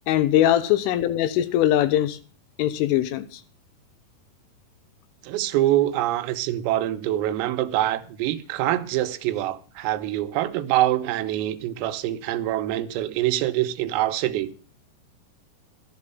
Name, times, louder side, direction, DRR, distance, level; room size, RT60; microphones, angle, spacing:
voice 1, 0.1-2.2 2.6-3.4, left 12 dB, 80° left, 3.3 m, -21 dB
voice 2, 5.2-14.5, right 14 dB, 90° right, 3.7 m, -25 dB
13.0 x 12.0 x 5.5 m
omnidirectional pair, 5.9 m